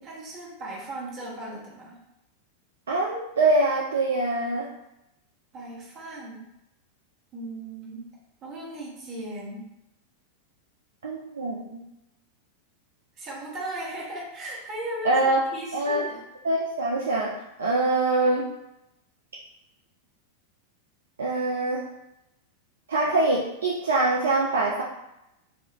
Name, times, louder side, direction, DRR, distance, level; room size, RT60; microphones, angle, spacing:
voice 1, 0.0-2.0 5.5-6.5 7.3-8.1 8.4-9.6 13.2-16.2, right 1 dB, 35° right, -5 dB, 1.0 m, -37 dB
voice 2, 2.9-4.7 11.0-11.8 15.0-15.4 15.7-16.0 16.4-17.3 17.6-18.4 21.2-21.8 22.9-24.8, right 2 dB, 65° right, -3 dB, 0.3 m, -24 dB
2.3 x 2.1 x 2.9 m, 0.89 s
figure-of-eight pair, 90°, 0 cm